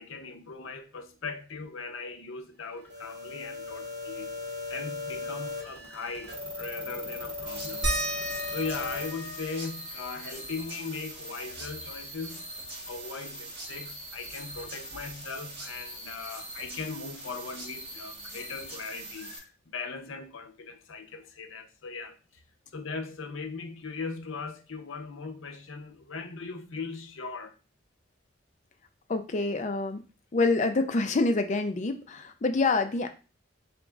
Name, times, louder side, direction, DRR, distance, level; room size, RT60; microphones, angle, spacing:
voice 1, 0.0-4.3 4.7-7.9 8.5-12.4 12.9-22.4 22.7-27.5, left 4 dB, 80° left, 0.6 m, -39 dB
sound 1, 2.9-9.1, left 3 dB, 55° right, 1.7 m, -38 dB
sound 2, 7.5-19.4, right 1 dB, 30° right, 1.5 m, -42 dB
sound 3, 7.8-13.0 13.3-13.4 13.7-15.5 16.8-16.9 17.6-17.7, equal, 80° right, 1.2 m, -38 dB
voice 2, 29.1-30.0 30.3-33.1, left 3 dB, 35° left, 0.4 m, -26 dB
3.7 x 3.0 x 3.6 m
head